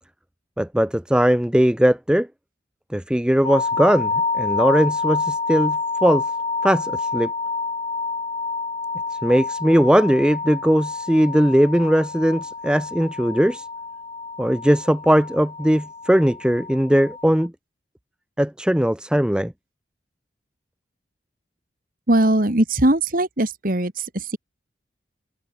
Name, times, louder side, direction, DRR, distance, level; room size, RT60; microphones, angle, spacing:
voice 1, 0.6-2.3 2.9-6.3 6.6-7.3 9.1-13.7 14.4-17.5 18.4-19.5, equal, 5° right, 0.6 m, -19 dB
sound 1, 3.4-17.5, left 4 dB, 30° left, 2.6 m, -28 dB
voice 2, 22.1-24.4, right 1 dB, 50° right, 2.1 m, -20 dB
head